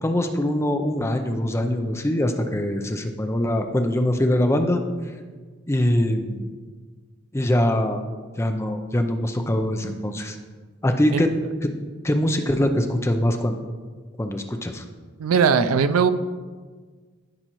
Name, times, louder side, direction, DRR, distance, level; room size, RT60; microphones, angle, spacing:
voice 1, 0.0-4.8 5.7-6.5 7.3-8.0 8.4-10.4 10.8-11.3 11.6-11.7 12.0-13.6 14.2-14.8, left 1 dB, 15° left, 5 dB, 0.5 m, -23 dB
voice 2, 15.2-16.1, right 6 dB, 90° right, 12 dB, 0.4 m, -19 dB
14.0 x 5.1 x 3.0 m, 1.5 s
head